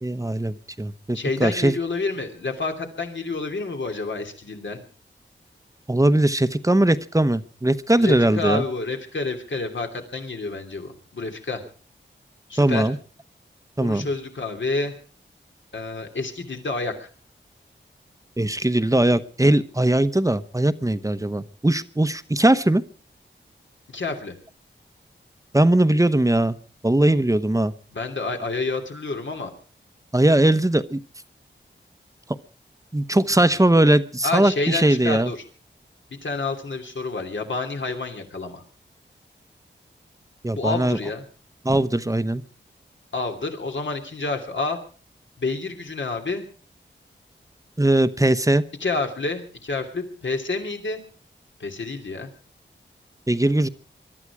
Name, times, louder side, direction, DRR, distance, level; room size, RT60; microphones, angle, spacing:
voice 1, 0.0-1.7 5.9-8.6 12.6-13.0 13.8-14.1 18.4-22.8 25.5-26.6 26.8-27.7 30.1-31.0 32.9-35.3 40.4-41.0 41.6-42.4 47.8-48.6 53.3-53.7, right 1 dB, 15° right, 13 dB, 0.9 m, -20 dB
voice 2, 1.1-4.8 8.0-11.6 12.5-12.9 13.8-14.9 15.7-17.1 23.9-24.4 27.9-29.5 34.2-35.4 36.2-38.6 40.5-41.2 43.1-44.8 45.4-46.5 48.8-51.0 51.6-52.3, left 3 dB, 70° left, 4 dB, 2.9 m, -29 dB
22.5 x 12.5 x 4.8 m, 0.39 s
wide cardioid pair, 60°, 20 cm